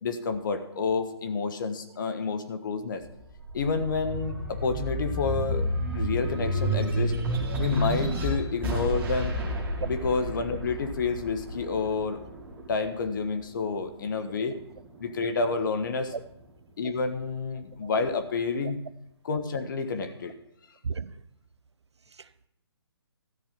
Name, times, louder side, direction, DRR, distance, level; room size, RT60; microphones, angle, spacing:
voice 1, 0.0-3.0 3.5-5.7 5.9-7.1 7.6-9.3 9.9-12.2 12.7-14.5 15.0-16.1 16.8-18.8 19.2-20.3, left 4 dB, 50° left, 1.5 m, -29 dB
sound 1, 3.0-13.8 14.3-15.5, right 1 dB, 10° right, 2.3 m, -31 dB
voice 2, 20.8-21.2 22.1-22.5, right 5 dB, 80° right, 0.7 m, -35 dB
13.5 x 5.5 x 8.8 m
hypercardioid pair, 150°, 14 cm